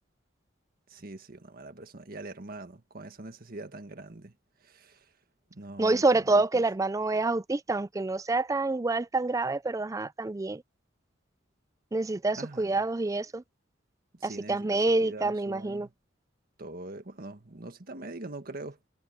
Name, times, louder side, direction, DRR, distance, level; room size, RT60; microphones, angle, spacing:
voice 1, 0.9-4.3 4.6-5.1 5.5-6.6 12.4-12.7 14.2-15.9 16.6-18.8, right 2 dB, 50° right, 1.6 m, -43 dB
voice 2, 5.8-10.6 11.9-13.4 14.2-15.9, right 2 dB, 15° right, 0.4 m, -27 dB
head